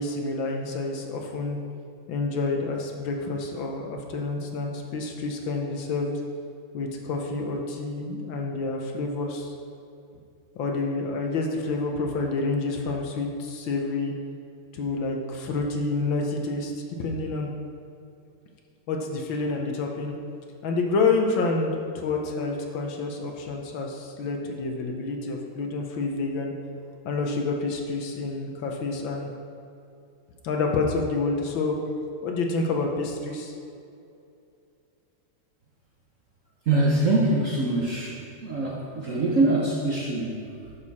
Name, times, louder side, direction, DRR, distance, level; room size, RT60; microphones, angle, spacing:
voice 1, 0.0-1.6 2.1-6.1 6.7-9.5 10.6-14.1 14.7-16.7 17.0-17.5 18.9-20.1 20.6-26.5 27.0-29.3 30.4-31.8 32.2-33.5, left 3 dB, 70° left, 2 dB, 1.6 m, -28 dB
voice 2, 36.7-40.5, right 2 dB, 55° right, -3 dB, 0.9 m, -24 dB
10.5 x 6.8 x 4.2 m, 2.6 s
omnidirectional pair, 2.4 m